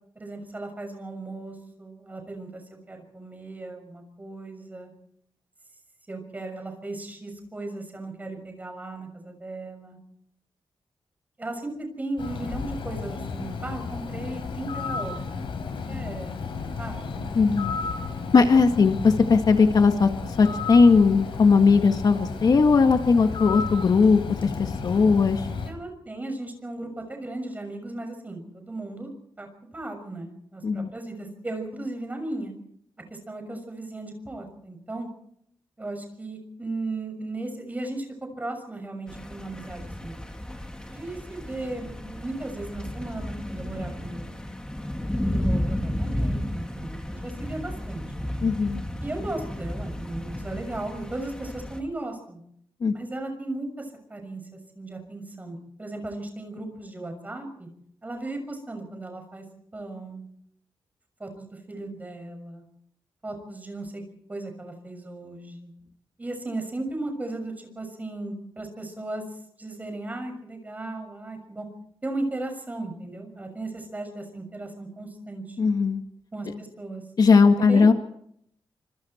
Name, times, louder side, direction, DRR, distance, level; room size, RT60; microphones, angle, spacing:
voice 1, 0.1-4.9 6.1-10.0 11.4-15.3 15.9-17.8 25.7-29.1 29.4-29.5 29.7-32.5 33.1-35.1 35.8-38.1 38.4-40.2 40.9-44.4 45.2-48.3 49.0-52.4 52.9-54.4 54.7-57.7 58.0-59.4 59.7-60.2 61.2-62.6 63.2-64.0 64.3-65.7 66.2-69.2 69.6-71.7 72.0-75.6 76.3-77.0 77.7-77.8, right 2 dB, 20° right, 5 dB, 6.3 m, -36 dB
Bird, 12.2-25.7, left 5 dB, 80° left, 5.4 m, -33 dB
voice 2, 17.4-17.7 18.3-20.1 20.4-25.5 30.6-30.9 48.4-48.8 52.8-52.9 75.6-76.0 77.2-77.9, left 4 dB, 50° left, 6 dB, 1.8 m, -18 dB
sound 1, 39.1-51.8, left 1 dB, 10° left, 2.5 m, -33 dB
27.0 x 26.0 x 4.5 m, 0.69 s
wide cardioid pair, 180°, 9 cm